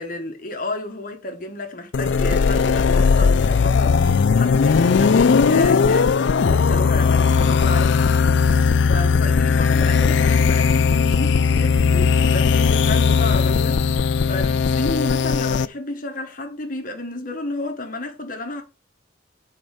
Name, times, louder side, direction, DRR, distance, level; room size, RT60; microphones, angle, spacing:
voice 1, 0.0-8.1 8.9-18.6, left 2 dB, 45° left, 1.1 m, -31 dB
sound 1, 1.9-15.7, left 5 dB, 65° left, 0.4 m, -18 dB
7.6 x 4.5 x 4.7 m
head